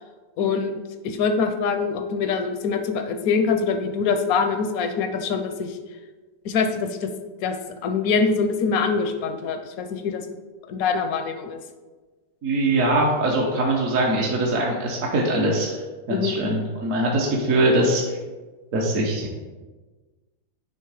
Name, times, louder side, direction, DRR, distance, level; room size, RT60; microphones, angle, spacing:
voice 1, 0.4-5.8 6.4-7.1 7.4-7.6 7.8-10.3 10.7-11.6 16.1-16.4, left 5 dB, 65° left, 7 dB, 0.9 m, -24 dB
voice 2, 12.4-15.8 16.1-18.2 18.7-19.4, right 1 dB, 55° right, -2 dB, 1.1 m, -22 dB
9.2 x 3.2 x 4.7 m, 1.3 s
omnidirectional pair, 2.0 m